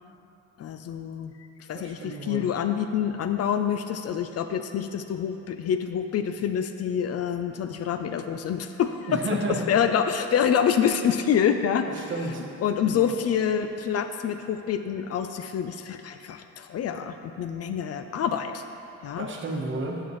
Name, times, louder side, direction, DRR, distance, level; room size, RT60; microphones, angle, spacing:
voice 1, 0.6-1.3 1.7-9.2 9.7-11.9 12.6-18.6 19.0-19.3, left 8 dB, 55° left, 8 dB, 0.4 m, -26 dB
voice 2, 1.7-2.5 9.1-9.7 12.0-12.5 12.8-13.1 19.2-20.0, right 2 dB, 40° right, 1 dB, 1.1 m, -32 dB
11.0 x 5.8 x 3.1 m, 2.8 s
cardioid pair, 90°, 30 cm